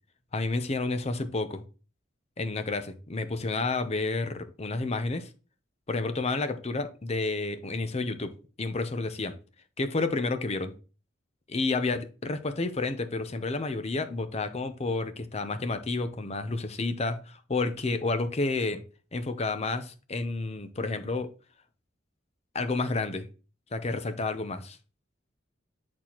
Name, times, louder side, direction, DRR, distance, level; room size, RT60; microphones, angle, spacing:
voice 1, 0.3-1.6 2.4-5.3 5.9-9.4 9.8-10.8 11.5-18.8 19.1-21.3 22.5-23.3 23.7-24.8, left 3 dB, 35° left, 0.7 m, -30 dB
8.3 x 4.3 x 2.9 m
head